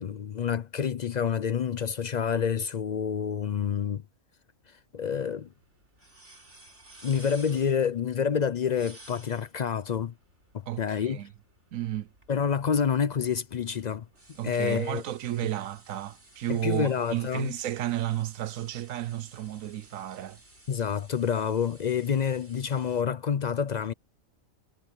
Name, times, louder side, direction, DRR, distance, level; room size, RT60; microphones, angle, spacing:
voice 1, 0.0-4.0 4.9-5.5 7.0-10.1 10.8-11.2 12.3-14.1 14.4-15.0 16.5-17.5 20.7-23.9, left 7 dB, 60° left, 0.4 m, -28 dB
sound 1, 5.0-23.0, right 1 dB, 55° right, 6.4 m, -55 dB
voice 2, 10.7-11.3 11.7-12.1 14.4-20.4, right 13 dB, 85° right, 1.1 m, -32 dB
omnidirectional pair, 1.4 m